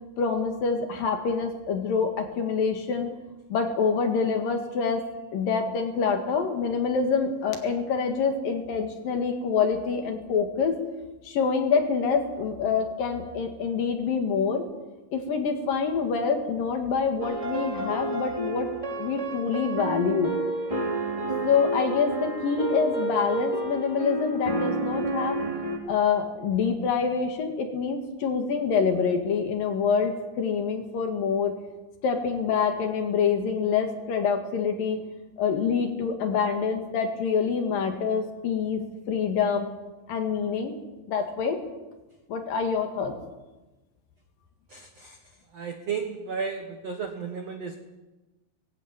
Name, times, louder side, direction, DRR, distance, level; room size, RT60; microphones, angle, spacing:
voice 1, 0.2-3.1 3.5-5.0 5.3-10.8 11.2-14.7 15.1-18.7 19.0-20.4 21.4-25.4 25.9-31.6 32.0-35.0 35.4-39.8 40.1-40.7 41.1-41.6 42.3-43.1, left 5 dB, 60° left, 5 dB, 3.1 m, -26 dB
sound 1, 17.2-25.8, right 2 dB, 10° right, 1.5 m, -30 dB
voice 2, 44.7-45.2 45.5-47.8, right 6 dB, 80° right, 5 dB, 1.4 m, -33 dB
18.0 x 16.5 x 9.1 m, 1.1 s
omnidirectional pair, 5.2 m